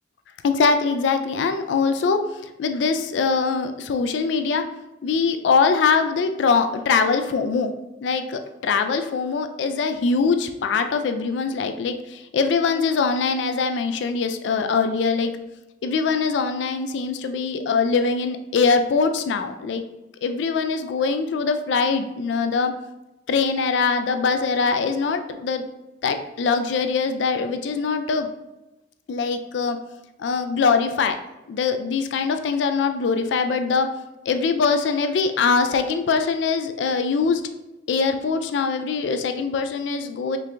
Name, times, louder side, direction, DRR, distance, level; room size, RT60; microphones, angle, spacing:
voice 1, 0.4-4.7 5.0-7.7 8.0-15.3 15.8-19.8 20.2-22.7 23.3-25.7 26.0-28.3 29.1-29.8 30.2-31.2 31.5-33.9 34.3-37.4 37.9-40.4, left 5 dB, 80° left, 8 dB, 0.3 m, -22 dB
4.5 x 3.3 x 2.5 m, 0.98 s
head